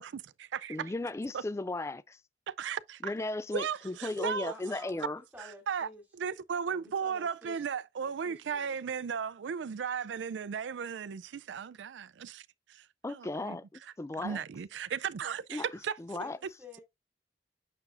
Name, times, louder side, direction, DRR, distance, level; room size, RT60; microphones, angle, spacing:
voice 1, 0.0-0.9 1.3-1.4 2.5-3.1 3.5-4.5 5.4-5.9 6.1-16.2, right 7 dB, 90° right, 0.4 m, -36 dB
voice 2, 0.7-2.2 3.0-5.2 13.0-14.4 15.5-15.6 16.0-16.4, left 2 dB, 15° left, 0.3 m, -36 dB
voice 3, 4.5-6.0 6.6-7.6 8.0-8.8 16.2-16.8, left 1 dB, 10° right, 2.7 m, -51 dB
6.9 x 6.8 x 2.5 m
head